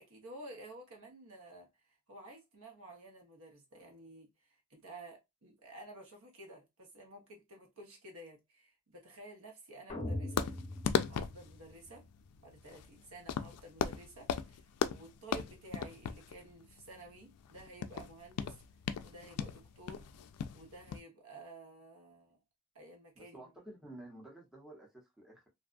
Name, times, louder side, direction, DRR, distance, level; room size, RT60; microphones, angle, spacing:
voice 1, 0.0-10.5 11.1-12.1 12.4-18.6 19.0-20.1 20.5-22.4 22.7-23.5, right 2 dB, 65° right, 1.1 m, -52 dB
sound 1, 9.9-12.0, left 1 dB, 30° left, 0.7 m, -41 dB
sound 2, 10.4-21.0, left 7 dB, 85° left, 0.3 m, -37 dB
voice 2, 23.2-25.5, right 1 dB, ahead, 0.8 m, -52 dB
2.6 x 2.3 x 2.4 m
head